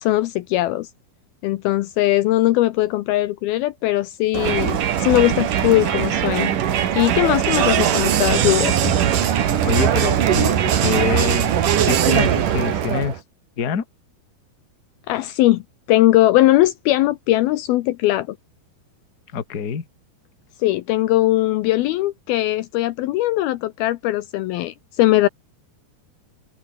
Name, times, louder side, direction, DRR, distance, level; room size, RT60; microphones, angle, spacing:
voice 1, 0.0-0.9 1.4-6.5 7.0-8.9 15.1-15.6 15.9-18.4 20.6-25.3, left 16 dB, 75° left, 2.5 m, -19 dB
Crowd, 4.3-13.2, right 9 dB, 55° right, 3.2 m, -20 dB
voice 2, 9.6-11.5 11.9-13.2 13.6-13.8 19.3-19.8, left 6 dB, 35° left, 1.8 m, -25 dB
open air
omnidirectional pair, 4.8 m